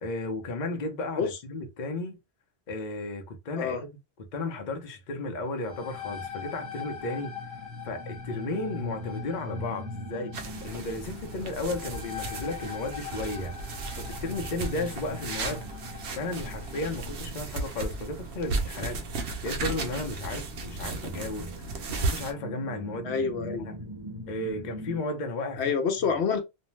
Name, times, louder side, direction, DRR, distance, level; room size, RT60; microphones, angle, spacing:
voice 1, 0.0-2.2 2.7-3.9 4.3-7.4 7.8-10.3 10.6-13.5 13.9-15.6 16.1-19.0 19.4-21.5 21.9-23.1 23.4-23.7 24.3-25.7, left 2 dB, 50° left, 0.7 m, -34 dB
sound 1, 5.4-16.9, left 9 dB, 5° left, 0.7 m, -43 dB
sound 2, 5.7-25.0, left 1 dB, 25° right, 1.0 m, -43 dB
sound 3, 10.3-22.3, right 3 dB, 85° right, 0.9 m, -35 dB
voice 2, 23.0-23.8 25.6-26.4, left 6 dB, 75° left, 0.9 m, -27 dB
2.6 x 2.1 x 3.0 m
omnidirectional pair, 1.1 m